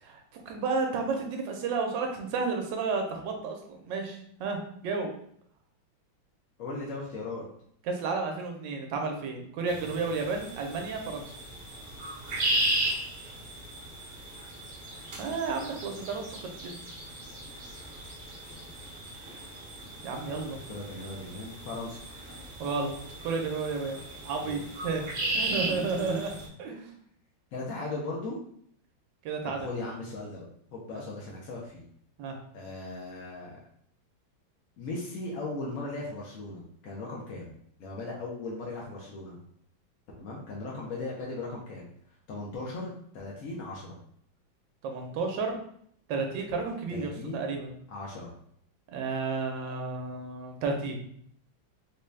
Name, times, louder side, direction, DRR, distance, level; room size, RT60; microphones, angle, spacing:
voice 1, 0.0-5.1 7.9-11.2 15.2-16.8 20.0-20.6 22.6-22.9 23.2-25.0 25.3-26.3 26.6-26.9 29.2-29.7 32.2-32.4 44.8-45.6 46.1-47.7 48.9-51.0, right 4 dB, 70° right, 3 dB, 1.3 m, -32 dB
voice 2, 6.6-7.4 18.5-18.9 20.3-22.0 23.9-24.0 24.4-24.6 25.1-26.2 27.5-28.4 29.6-30.5 30.7-31.9 32.5-33.6 34.8-37.5 37.8-39.4 40.2-41.9 42.3-44.0 46.9-47.4 47.9-48.3, left 2 dB, 65° left, -3 dB, 0.8 m, -38 dB
sound 1, 9.7-26.5, right 1 dB, 45° right, 0.9 m, -36 dB
3.9 x 2.3 x 3.2 m, 0.66 s
omnidirectional pair, 2.1 m